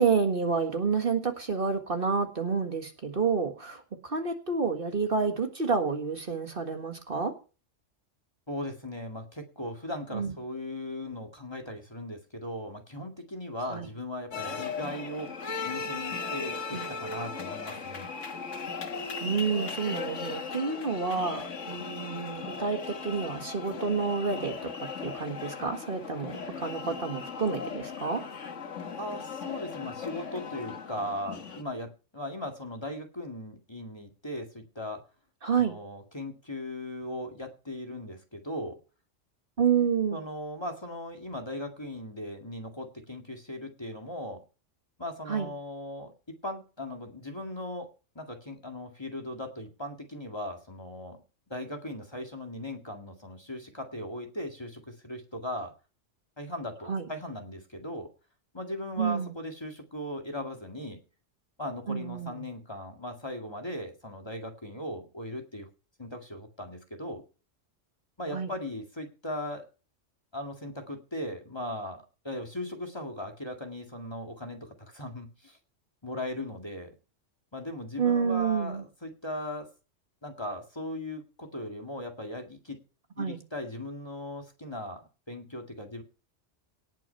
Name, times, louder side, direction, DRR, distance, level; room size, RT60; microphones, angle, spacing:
voice 1, 0.0-7.3 10.1-10.3 13.7-13.9 16.7-16.9 19.2-22.8 23.0-24.5 25.0-28.2 35.4-35.8 39.6-40.2 45.3-45.5 56.9-57.1 59.0-59.3 61.9-62.4 68.3-68.5 78.0-78.8 83.2-83.4, right 5 dB, 45° right, 5 dB, 1.8 m, -29 dB
voice 2, 8.5-18.1 29.0-35.0 35.5-38.8 40.1-44.4 45.0-47.9 48.2-51.2 51.5-55.7 56.4-58.1 58.5-61.0 61.6-65.7 66.0-67.2 68.2-69.7 70.3-75.6 76.0-77.0 77.5-79.7 80.2-82.8 83.2-86.0, left 1 dB, 20° left, 3 dB, 2.0 m, -38 dB
sound 1, 14.3-31.6, left 5 dB, 75° left, 1.7 m, -37 dB
18.0 x 6.1 x 5.7 m, 0.34 s
omnidirectional pair, 1.3 m